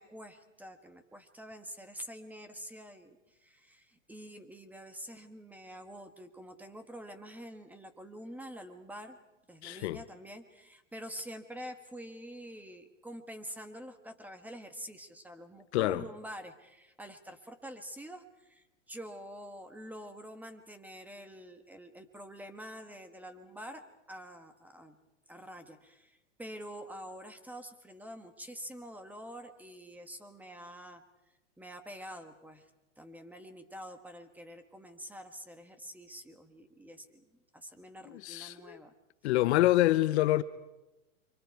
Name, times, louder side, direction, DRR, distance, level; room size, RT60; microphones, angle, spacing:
voice 1, 0.0-9.2 9.5-25.0 25.3-31.0 31.6-32.7 33.0-37.3 37.5-38.9, equal, 5° right, 1.5 m, -47 dB
voice 2, 9.6-10.0 15.7-16.0 38.1-38.8 39.2-40.4, left 16 dB, 60° left, 0.8 m, -26 dB
29.5 x 24.5 x 4.7 m
hypercardioid pair, 125°, 37 cm